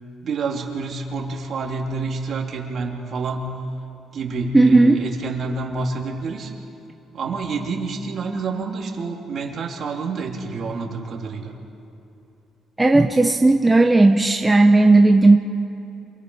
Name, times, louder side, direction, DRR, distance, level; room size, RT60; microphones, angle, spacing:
voice 1, 0.2-3.5 4.1-6.5 7.1-11.6, right 4 dB, 55° right, 0 dB, 3.2 m, -28 dB
voice 2, 4.5-5.0 12.8-15.4, right 2 dB, 15° right, 3 dB, 1.1 m, -14 dB
27.5 x 23.5 x 5.6 m, 2.8 s
cardioid pair, 100°, 0 cm